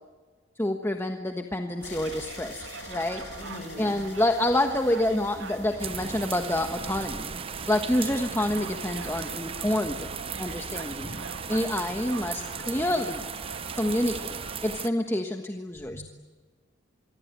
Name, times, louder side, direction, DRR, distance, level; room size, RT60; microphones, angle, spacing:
voice 1, 0.6-3.2 3.8-7.3 7.7-10.1 10.4-11.1 11.5-13.3 13.8-16.0, left 1 dB, 15° left, 5 dB, 1.3 m, -28 dB
sound 1, 1.8-9.8 10.6-11.2, left 4 dB, 65° left, 7.2 m, -49 dB
sound 2, 1.8-14.6, right 4 dB, 85° right, 2.0 m, -42 dB
voice 2, 3.4-4.0 11.0-11.3 15.7-16.0, left 1 dB, 35° left, 5 dB, 6.7 m, -41 dB
sound 3, 5.8-14.9, right 6 dB, 30° right, 0.7 m, -37 dB
26.5 x 23.5 x 9.6 m, 1.5 s
head